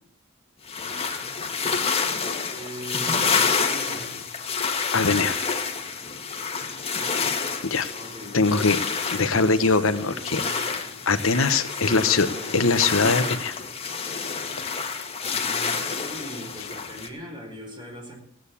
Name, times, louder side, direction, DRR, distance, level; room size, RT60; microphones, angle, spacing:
sound 1, 0.7-17.1, left 5 dB, 30° left, 1.9 m, -28 dB
voice 1, 2.5-4.4 6.9-7.4 8.0-8.4 9.1-9.6 10.1-11.0 11.7-12.6 15.2-18.1, equal, 25° right, 1 dB, 5.0 m, -40 dB
voice 2, 4.9-5.4 7.6-7.9 8.3-8.8 9.1-10.4 11.1-12.3 12.5-13.5, left 4 dB, 85° left, 10 dB, 1.2 m, -22 dB
16.5 x 9.2 x 8.5 m, 0.63 s
head